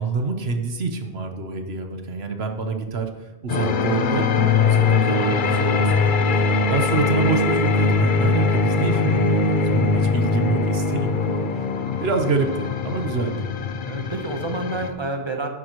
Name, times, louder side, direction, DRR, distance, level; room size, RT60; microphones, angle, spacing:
voice 1, 0.0-11.3 12.0-13.4, right 4 dB, 70° right, 5 dB, 1.3 m, -27 dB
sound 1, 3.5-14.9, left 4 dB, 55° left, 0.8 m, -21 dB
voice 2, 9.7-10.0 13.9-15.5, right 2 dB, 25° right, 3 dB, 1.2 m, -29 dB
11.5 x 10.0 x 3.1 m, 1.1 s
omnidirectional pair, 1.1 m